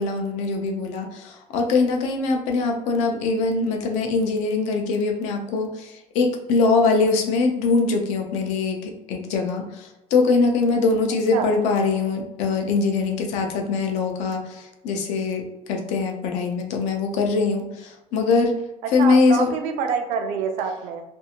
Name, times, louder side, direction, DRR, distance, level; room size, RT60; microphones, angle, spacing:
voice 1, 0.0-18.6 18.9-19.5, left 4 dB, 85° left, 3 dB, 0.5 m, -22 dB
voice 2, 19.0-21.0, right 6 dB, 80° right, 5 dB, 0.5 m, -26 dB
2.6 x 2.5 x 2.7 m, 0.95 s
cardioid pair, 170°, 12 cm